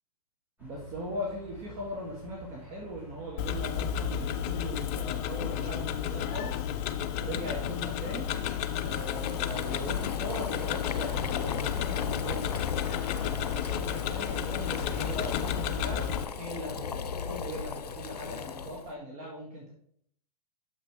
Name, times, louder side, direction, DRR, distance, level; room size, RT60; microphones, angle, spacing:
sound 1, 0.6-16.3, right 2 dB, 10° right, 2.6 m, -49 dB
voice 1, 0.6-6.6 7.2-8.3 8.8-12.6 13.2-16.1 16.4-19.7, equal, 35° right, -2 dB, 1.7 m, -39 dB
Tick-tock, 3.4-16.2, left 10 dB, 35° left, 0.5 m, -32 dB
Boiling, 7.6-18.9, left 6 dB, 90° left, 0.5 m, -37 dB
6.6 x 6.1 x 3.5 m, 0.65 s
hypercardioid pair, 115°, 20 cm